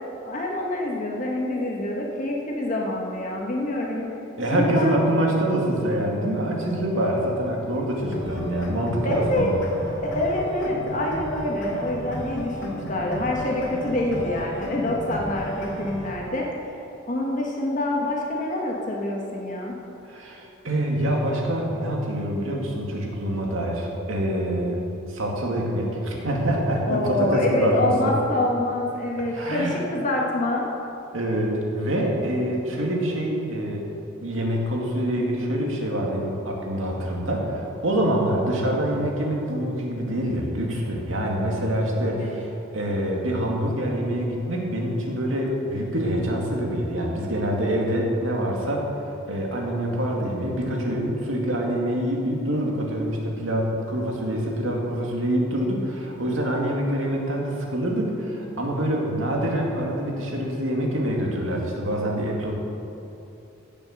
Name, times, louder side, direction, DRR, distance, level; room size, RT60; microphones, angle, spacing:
voice 1, 0.0-4.1 4.5-5.0 9.0-9.5 10.0-16.7 17.1-19.8 26.9-30.7 42.0-42.4, left 1 dB, 40° left, -2 dB, 1.6 m, -26 dB
voice 2, 4.4-9.5 20.1-24.8 25.1-28.2 29.3-29.8 31.1-33.9 34.2-48.9 49.3-62.6, right 1 dB, 75° right, -1 dB, 2.3 m, -25 dB
sound 1, 8.1-16.1, right 1 dB, 60° left, 2.7 m, -33 dB
16.0 x 6.9 x 6.6 m, 2.8 s
head